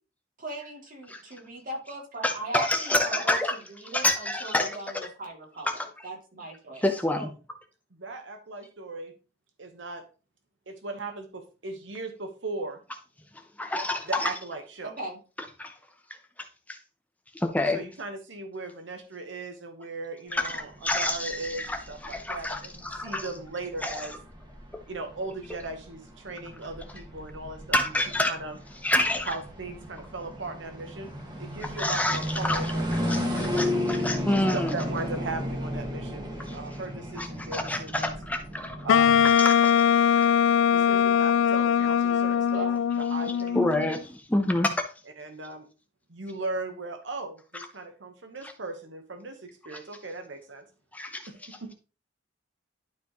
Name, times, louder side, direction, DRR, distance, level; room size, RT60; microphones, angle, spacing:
voice 1, 0.4-3.4 3.7-6.8 15.0-15.2 42.5-42.8, right 2 dB, 45° right, 0 dB, 2.6 m, -38 dB
voice 2, 2.2-3.6 3.8-5.1 5.7-6.1 6.8-7.3 13.6-14.3 15.6-15.7 16.7-16.8 17.3-17.8 20.3-23.3 23.8-24.1 27.7-28.3 28.8-29.3 31.6-34.8 36.5-36.6 37.2-38.9 39.2-39.7 43.5-44.8 47.5-47.7 49.7-49.8 50.9-51.6, left 1 dB, 10° left, 6 dB, 0.6 m, -28 dB
voice 3, 8.0-9.1 9.6-10.0 10.7-12.8 14.1-14.9 17.7-24.1 24.9-27.9 28.3-28.6 29.3-31.1 31.4-33.5 34.5-38.1 38.8-39.3 40.7-42.7 43.0-43.6 45.2-45.7 46.1-50.6 51.3-51.7, right 3 dB, 75° right, 5 dB, 1.1 m, -38 dB
sound 1, 20.3-39.3, left 1 dB, 25° right, 1.7 m, -34 dB
Wind instrument woodwind instrument, 38.9-43.9, left 8 dB, 85° left, 0.3 m, -21 dB
11.5 x 4.7 x 3.0 m, 0.34 s
head